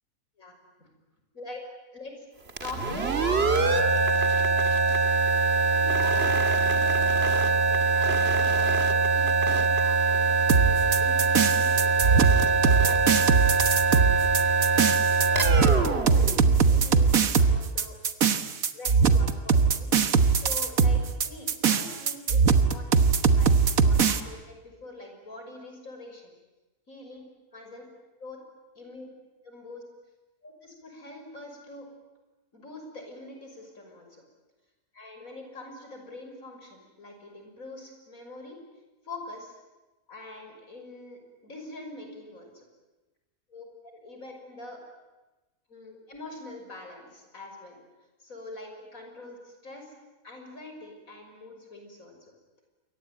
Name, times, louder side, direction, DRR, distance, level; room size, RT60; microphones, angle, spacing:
voice 1, 0.4-0.9 1.3-1.6 1.9-2.1 2.6-4.5 5.7-12.3 12.8-14.4 15.0-18.0 18.7-19.9 20.3-23.0 23.3-23.6 23.8-26.3 26.9-27.2 27.5-27.8 28.2-28.4 28.7-29.1 29.4-29.8 30.4-31.9 32.5-34.2 34.9-38.6 39.0-39.6 40.1-42.6 43.5-44.8 45.7-47.8 48.2-49.9 50.2-52.2, left 2 dB, 65° left, 3 dB, 6.4 m, -44 dB
sound 1, 2.5-17.1, right 4 dB, 45° right, 2.1 m, -23 dB
sound 2, 10.5-24.2, right 5 dB, 70° right, 1.8 m, -21 dB
28.0 x 23.0 x 9.2 m, 1.1 s
omnidirectional pair, 1.5 m